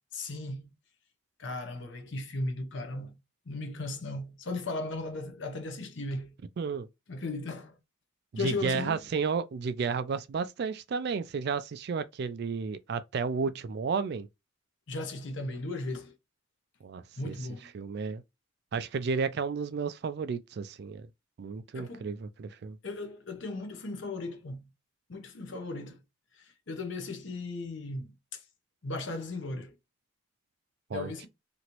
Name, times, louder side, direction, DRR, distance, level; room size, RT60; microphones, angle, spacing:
voice 1, 0.1-0.7 1.4-3.2 3.5-6.4 7.1-7.8 8.4-9.0 14.9-16.1 17.2-17.7 21.7-22.1 22.8-24.7 25.1-26.0 26.3-28.4 28.8-29.8 30.9-31.3, left 2 dB, 60° left, 0.7 m, -36 dB
voice 2, 6.6-6.9 8.3-14.3 16.8-17.3 17.7-18.2 18.7-21.1 21.4-22.8 30.9-31.1, right 5 dB, 50° right, 0.3 m, -32 dB
3.0 x 2.6 x 2.9 m
head